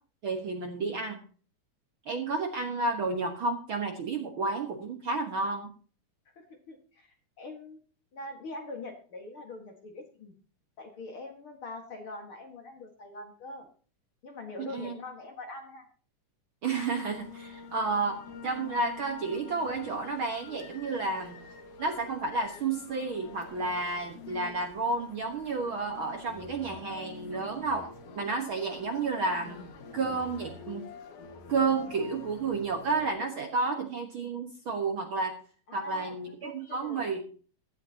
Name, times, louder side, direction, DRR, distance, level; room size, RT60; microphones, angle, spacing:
voice 1, 0.2-1.2 2.1-5.7 14.6-14.9 16.6-21.4 21.8-27.9 28.1-29.6 29.9-30.9 31.5-35.4 35.7-37.2, right 3 dB, 55° right, 3 dB, 1.7 m, -31 dB
voice 2, 6.4-7.8 8.1-10.4 10.8-13.7 14.2-15.9 35.7-37.1, left 2 dB, 45° left, 3 dB, 2.2 m, -43 dB
sound 1, 17.0-33.1, left 4 dB, 70° left, 2.9 m, -47 dB
16.5 x 12.5 x 2.9 m, 0.40 s
omnidirectional pair, 3.7 m